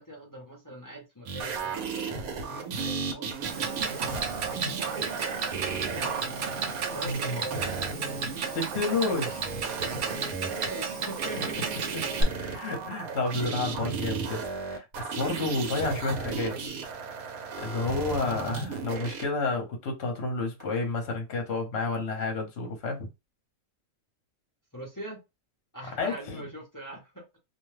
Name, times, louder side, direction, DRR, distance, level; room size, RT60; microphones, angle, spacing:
voice 1, 0.0-4.4 4.8-6.3 6.9-7.7 10.1-11.7 24.7-25.2 25.7-27.4, right 1 dB, 20° left, 0.6 m, -43 dB
sound 1, 1.3-19.2 20.6-20.7, right 4 dB, 80° right, 1.1 m, -35 dB
Clock, 3.4-12.2, right 5 dB, 65° right, 0.7 m, -33 dB
voice 2, 7.0-7.4 8.5-9.6 12.2-16.6 17.6-23.1 26.0-26.5, left 3 dB, 55° left, 1.0 m, -30 dB
2.6 x 2.2 x 3.2 m
omnidirectional pair, 1.5 m